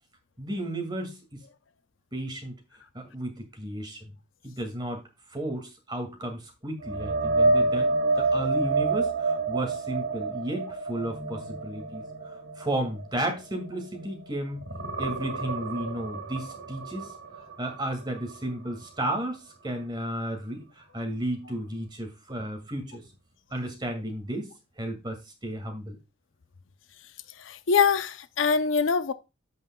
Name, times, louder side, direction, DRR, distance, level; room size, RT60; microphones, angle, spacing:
voice 1, 0.4-1.2 2.1-2.6 2.9-4.0 4.4-5.0 5.3-7.9 8.2-12.0 12.6-14.6 15.0-17.1 17.6-23.0 23.5-24.5 24.8-26.0, right 1 dB, 25° right, 2.1 m, -33 dB
sound 1, 6.8-14.2 14.6-18.4 18.8-19.0 22.4-22.5, right 3 dB, 75° right, 2.3 m, -29 dB
voice 2, 27.4-29.1, left 5 dB, 85° left, 0.6 m, -23 dB
14.5 x 5.4 x 2.3 m
head